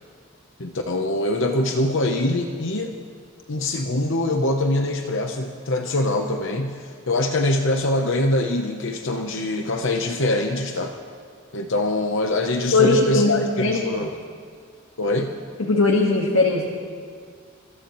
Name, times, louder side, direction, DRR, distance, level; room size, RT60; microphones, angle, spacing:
voice 1, 0.6-3.0 3.5-10.9 11.5-14.2 15.0-15.3, left 1 dB, 60° left, 4 dB, 0.9 m, -24 dB
voice 2, 12.7-13.8 15.7-16.6, left 3 dB, 75° left, 0 dB, 1.6 m, -19 dB
29.0 x 15.5 x 3.1 m, 2.1 s
head